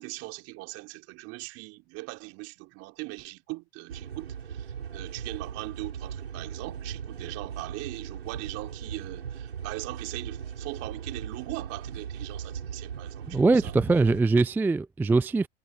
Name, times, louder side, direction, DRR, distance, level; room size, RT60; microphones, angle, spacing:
voice 1, 0.0-13.7, right 24 dB, 50° right, 3.7 m, -40 dB
sound 1, 3.9-14.2, right 7 dB, 85° right, 5.9 m, -38 dB
voice 2, 13.3-15.5, right 3 dB, 5° right, 0.4 m, -22 dB
hypercardioid pair, 90°, 30 cm